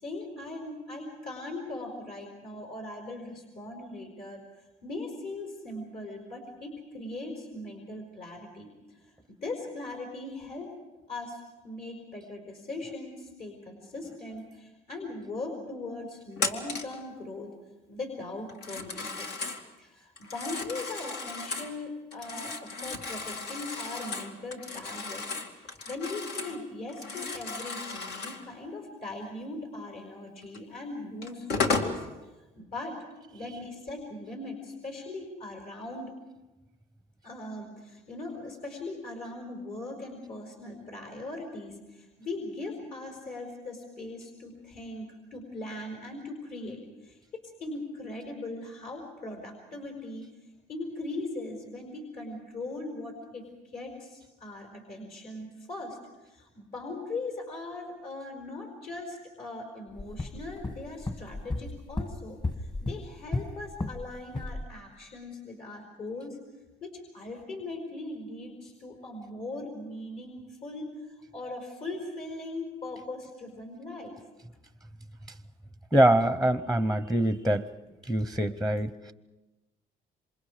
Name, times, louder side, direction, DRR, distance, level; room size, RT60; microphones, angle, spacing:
voice 1, 0.0-4.4 4.8-8.7 9.4-10.7 11.1-17.5 17.9-19.3 19.8-25.2 25.6-32.1 32.5-33.0 33.3-36.1 37.2-50.2 50.7-56.0 56.3-66.4 66.8-74.2, left 2 dB, 60° left, 5.0 m, -40 dB
Telephone, 16.4-17.0 18.5-19.6 20.2-21.7 22.1-26.6 26.9-28.4 30.5-30.6 31.2-32.0, left 4 dB, 80° left, 2.5 m, -34 dB
sound 1, 60.0-64.1 64.3-64.6, left 2 dB, 25° left, 1.7 m, -34 dB
voice 2, 75.9-77.7 78.0-79.1, right 1 dB, 5° left, 0.7 m, -24 dB
27.5 x 26.0 x 5.0 m
cardioid pair, 110°, 17 cm